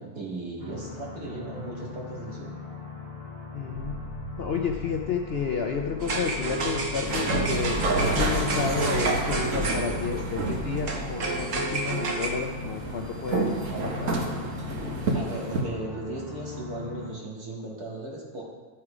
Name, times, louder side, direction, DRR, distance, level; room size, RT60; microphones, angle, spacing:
voice 1, 0.0-2.5 15.1-18.4, right 2 dB, 75° right, -3 dB, 2.4 m, -37 dB
sound 1, 0.6-17.1, left 5 dB, 10° left, 2.4 m, -41 dB
voice 2, 3.5-3.9 4.4-13.5 13.8-14.2, left 6 dB, 60° left, 2 dB, 0.7 m, -31 dB
sound 2, 3.7-10.8, equal, 40° right, 1.0 m, -43 dB
sound 3, 6.0-15.6, right 2 dB, 55° right, 1.4 m, -28 dB
12.0 x 5.7 x 4.9 m, 1.3 s
omnidirectional pair, 1.7 m